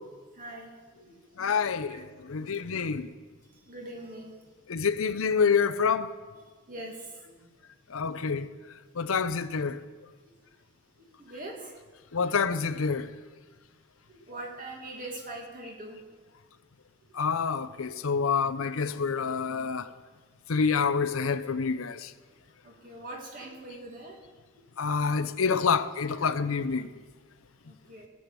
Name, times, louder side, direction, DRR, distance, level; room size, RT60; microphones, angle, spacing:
voice 1, 0.1-1.3 1.6-2.0 2.4-2.5 3.5-4.5 6.3-6.4 6.7-7.5 9.1-9.2 11.0-11.8 12.3-12.4 13.6-13.7 14.1-16.1 17.0-17.2 22.6-24.3 27.6-28.1, right 2 dB, 40° right, 2.4 m, -43 dB
voice 2, 1.4-3.1 4.7-6.1 7.9-8.5 9.0-9.8 12.1-13.1 17.2-19.9 20.5-22.1 24.8-26.9, left 5 dB, 90° left, 0.7 m, -27 dB
16.5 x 7.8 x 6.9 m
head